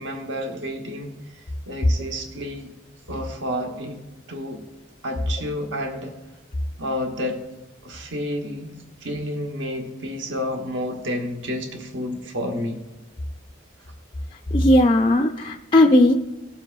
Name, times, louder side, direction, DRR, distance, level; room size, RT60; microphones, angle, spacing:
voice 1, 0.0-2.7 3.1-4.0 4.3-4.6 5.0-6.2 6.8-7.4 7.8-12.8 13.8-13.9, left 1 dB, 65° right, 3 dB, 1.1 m, -30 dB
voice 2, 14.5-16.1, left 1 dB, 25° left, 3 dB, 0.4 m, -16 dB
18.5 x 7.3 x 2.4 m, 1.0 s
head